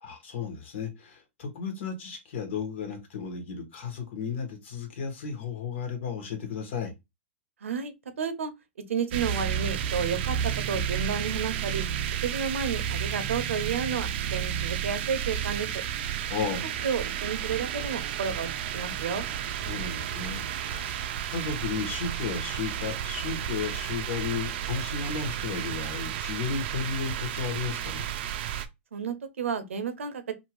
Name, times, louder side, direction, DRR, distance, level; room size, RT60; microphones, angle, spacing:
voice 1, 0.0-6.9 16.3-16.7 19.5-21.0 21.3-28.1, left 5 dB, 65° left, 1.4 m, -34 dB
voice 2, 7.6-8.5 8.9-10.4 10.7-11.8 12.2-15.7 16.5-16.6 16.8-18.5 18.7-19.3 28.9-30.3, right 6 dB, 90° right, 0.7 m, -31 dB
sound 1, 9.1-28.7, right 10 dB, 55° right, 0.5 m, -32 dB
2.7 x 2.7 x 3.0 m
hypercardioid pair, 135°, 7 cm